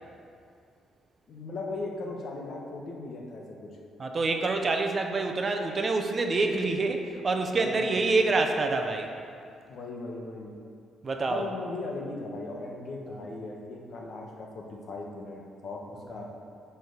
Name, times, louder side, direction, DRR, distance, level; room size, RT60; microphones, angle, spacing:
voice 1, 1.3-3.7 7.5-8.0 9.7-10.5 11.3-16.3, left 3 dB, 60° left, 0 dB, 1.2 m, -38 dB
voice 2, 4.0-9.1 11.0-11.4, right 3 dB, 40° right, 4 dB, 0.7 m, -26 dB
8.7 x 3.5 x 6.5 m, 2.4 s
cardioid pair, 90°, 0 cm